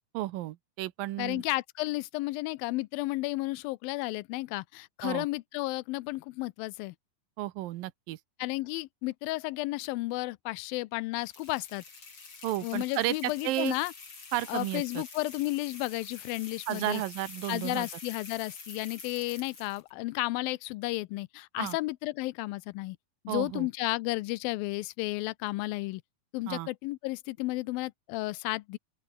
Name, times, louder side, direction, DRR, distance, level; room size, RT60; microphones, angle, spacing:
voice 1, 0.1-1.4 5.0-5.3 7.4-8.2 12.4-13.7 14.3-15.0 16.7-17.9 21.6-21.8 23.3-23.7 26.5-26.7, right 15 dB, 80° right, 2.5 m, -33 dB
voice 2, 1.2-6.9 8.4-11.8 12.6-13.9 14.5-17.0 17.5-23.0 23.3-26.0 26.3-28.8, left 20 dB, 85° left, 2.4 m, -33 dB
sound 1, 11.2-19.9, left 4 dB, 35° left, 4.6 m, -47 dB
open air
omnidirectional pair, 4.1 m